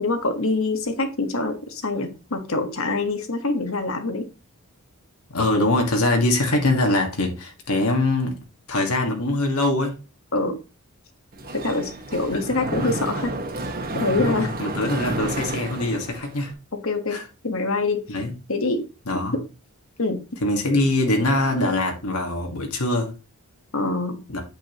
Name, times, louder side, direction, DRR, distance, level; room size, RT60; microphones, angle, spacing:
voice 1, 0.0-4.3 10.3-10.6 11.5-13.3 13.9-14.5 16.7-18.2 18.5-18.8 19.3-19.4 20.0-20.2 23.7-24.2, left 3 dB, 65° left, 1.6 m, -25 dB
voice 2, 5.3-8.4 8.7-10.0 14.2-16.5 17.1-17.2 18.1-18.3 19.1-19.4 20.4-23.1 24.3-24.4, left 2 dB, 85° left, 2.0 m, -23 dB
Mechanisms, 11.3-16.5, right 1 dB, 40° right, 1.6 m, -30 dB
8.7 x 7.8 x 3.1 m
head